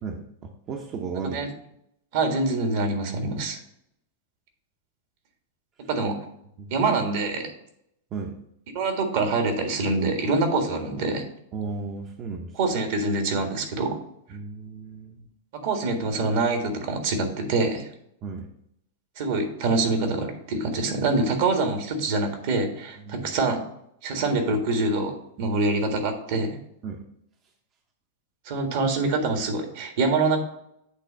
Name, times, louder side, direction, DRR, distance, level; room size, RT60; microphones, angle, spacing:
voice 1, 0.7-1.4 6.6-6.8 8.1-8.4 11.5-12.6 14.3-15.2 18.2-18.5 23.0-23.3 25.4-25.5 26.8-27.0, right 4 dB, 35° right, 2 dB, 0.8 m, -34 dB
voice 2, 2.1-3.6 5.9-6.2 6.7-7.5 8.7-11.2 12.6-14.0 15.6-17.9 19.2-23.6 24.0-26.6 28.4-30.4, right 3 dB, 60° right, 4 dB, 1.6 m, -25 dB
8.3 x 3.3 x 5.0 m, 0.75 s
hypercardioid pair, 120°, 0 cm